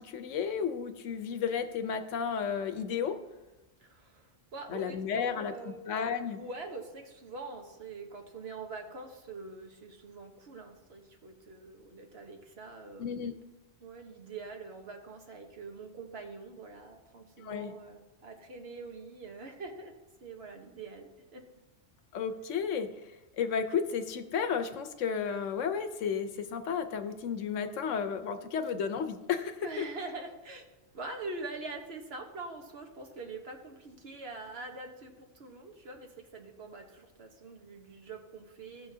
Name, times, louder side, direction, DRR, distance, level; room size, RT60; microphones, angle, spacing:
voice 1, 0.0-3.2 4.7-5.5 5.9-6.4 13.0-13.3 17.4-17.7 22.1-22.9 23.4-29.7, left 7 dB, 75° left, 9 dB, 1.1 m, -32 dB
voice 2, 3.8-5.9 6.3-13.2 13.8-19.9 20.2-21.4 28.6-28.7 29.6-38.9, right 3 dB, 55° right, 3 dB, 1.4 m, -44 dB
16.5 x 6.0 x 2.8 m, 1.1 s
omnidirectional pair, 1.3 m